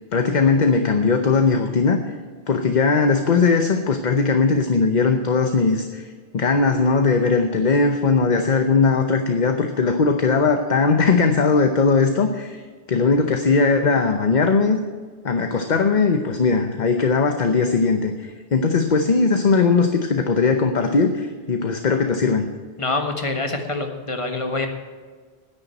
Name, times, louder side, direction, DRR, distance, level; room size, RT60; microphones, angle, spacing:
voice 1, 0.1-2.0 2.5-6.1 6.3-14.8 15.2-22.5, left 4 dB, 45° left, 6 dB, 0.9 m, -19 dB
voice 2, 22.8-24.7, left 2 dB, 30° left, 4 dB, 1.5 m, -25 dB
10.0 x 10.0 x 8.9 m, 1.5 s
omnidirectional pair, 1.1 m